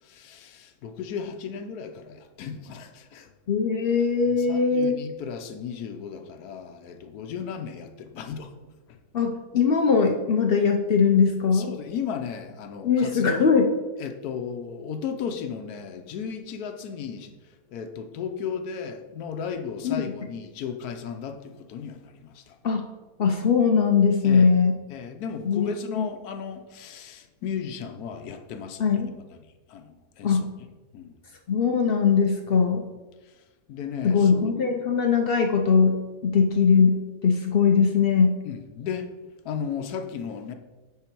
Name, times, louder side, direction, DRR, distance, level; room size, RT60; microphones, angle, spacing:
voice 1, 0.0-3.3 4.2-8.5 8.9-9.0 11.5-13.4 14.0-22.6 24.2-24.6 24.9-28.9 29.3-29.4 29.7-30.4 30.9-31.1 33.2-33.3 33.7-34.5 38.4-39.1 39.4-40.5, left 7 dB, 85° left, 6 dB, 1.2 m, -35 dB
voice 2, 3.5-5.0 9.1-11.7 12.8-13.7 19.8-20.0 22.6-22.8 23.2-24.7 25.5-25.7 26.0-26.1 28.8-29.1 30.2-30.4 31.5-32.8 34.0-38.3, left 5 dB, 60° left, 4 dB, 0.6 m, -21 dB
9.3 x 3.8 x 4.5 m, 1.2 s
omnidirectional pair, 1.6 m